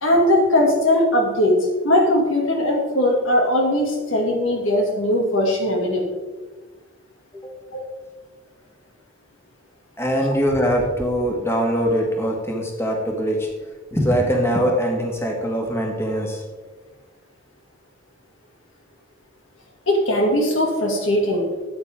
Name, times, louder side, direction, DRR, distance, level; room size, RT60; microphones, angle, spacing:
voice 1, 0.0-6.0 7.7-7.8 19.9-21.4, left 1 dB, 85° left, 1 dB, 2.5 m, -19 dB
voice 2, 10.0-13.5 13.9-16.4, equal, 15° left, 0 dB, 1.8 m, -22 dB
13.5 x 8.9 x 3.7 m, 1.3 s
head